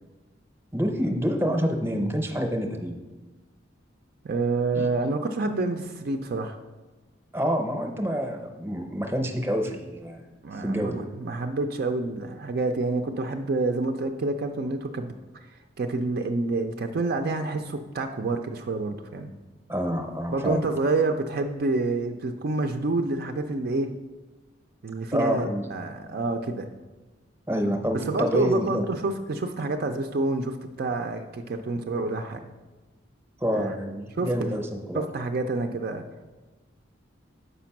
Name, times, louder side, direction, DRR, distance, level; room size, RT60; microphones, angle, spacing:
voice 1, 0.7-3.0 4.7-4.9 7.3-10.2 10.6-11.0 19.7-20.6 25.1-25.7 27.5-28.8 33.4-35.0, equal, 10° right, 4 dB, 0.7 m, -27 dB
voice 2, 4.2-6.6 10.4-15.1 15.8-19.3 20.3-23.9 24.8-25.5 25.7-26.7 27.9-32.4 33.5-33.8 34.2-34.6 34.9-36.0, right 3 dB, 50° right, 5 dB, 0.4 m, -28 dB
6.7 x 5.1 x 5.8 m, 1.2 s
head